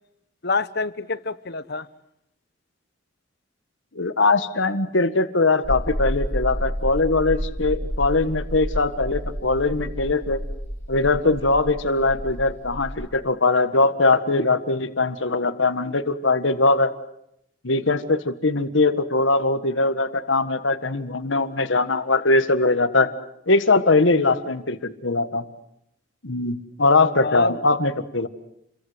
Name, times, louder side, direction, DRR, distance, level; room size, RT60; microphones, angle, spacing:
voice 1, 0.4-1.9 27.0-27.6, left 4 dB, 60° left, 15 dB, 1.1 m, -27 dB
voice 2, 3.9-10.4 10.9-16.9 17.6-23.1 23.5-25.4 26.2-28.3, left 3 dB, 80° left, 11 dB, 1.6 m, -21 dB
sound 1, 5.6-13.1, equal, 15° left, 3.0 m, -30 dB
29.5 x 23.0 x 8.1 m, 0.77 s
head